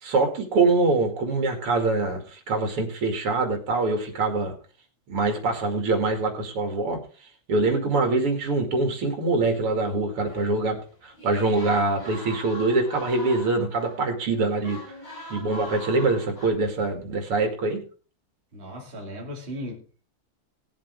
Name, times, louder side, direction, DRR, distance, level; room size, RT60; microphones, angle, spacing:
voice 1, 0.0-4.5 5.1-7.0 7.5-14.8 15.3-17.8, right 3 dB, 85° right, 4 dB, 3.2 m, -24 dB
sound 1, 9.6-14.2 14.6-16.5, equal, 50° left, 7.9 m, -41 dB
voice 2, 18.5-20.0, equal, 25° right, -2 dB, 2.7 m, -37 dB
19.5 x 7.5 x 3.5 m, 0.37 s
omnidirectional pair, 2.4 m